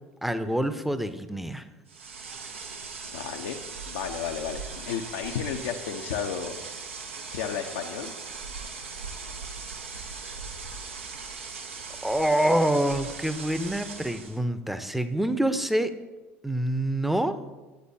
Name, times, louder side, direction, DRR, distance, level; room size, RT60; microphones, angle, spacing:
voice 1, 0.2-1.7 12.0-15.9 16.4-17.4, right 1 dB, 5° right, 11 dB, 0.6 m, -26 dB
sound 1, 1.9-14.4, right 4 dB, 85° right, 0.7 m, -39 dB
voice 2, 3.1-6.6 7.3-8.1, left 8 dB, 70° left, 2 dB, 0.5 m, -33 dB
11.5 x 8.0 x 2.7 m, 1.2 s
hypercardioid pair, 70°, 6 cm